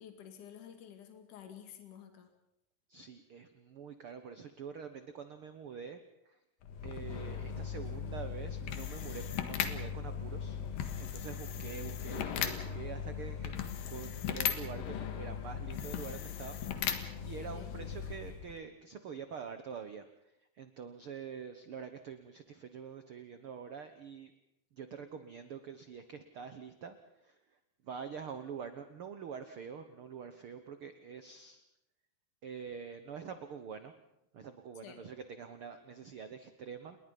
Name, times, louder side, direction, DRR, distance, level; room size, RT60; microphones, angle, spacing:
voice 1, 0.0-2.3 17.5-17.7 34.8-35.0, left 9 dB, 60° left, 5 dB, 3.8 m, -51 dB
voice 2, 2.9-6.0 6.2-6.4 6.8-10.6 11.0-16.6 17.0-20.1 20.5-24.3 24.7-27.0 27.2-27.6 27.8-31.6 32.4-33.9 34.3-37.0, right 6 dB, 60° right, 9 dB, 1.4 m, -46 dB
sound 1, 6.6-18.6, left 8 dB, 75° left, 3.4 m, -38 dB
29.0 x 21.5 x 5.4 m, 0.81 s
omnidirectional pair, 4.1 m